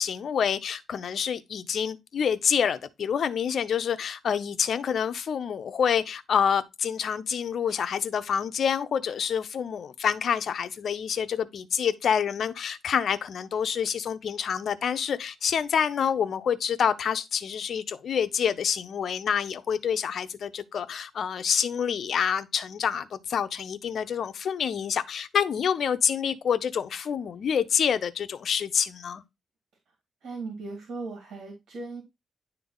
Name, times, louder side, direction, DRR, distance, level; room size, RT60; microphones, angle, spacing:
voice 1, 0.0-29.2, left 7 dB, 60° left, 0.6 m, -27 dB
voice 2, 30.2-32.0, right 3 dB, 80° right, 2.2 m, -37 dB
10.0 x 3.4 x 3.9 m
cardioid pair, 130°, 0 cm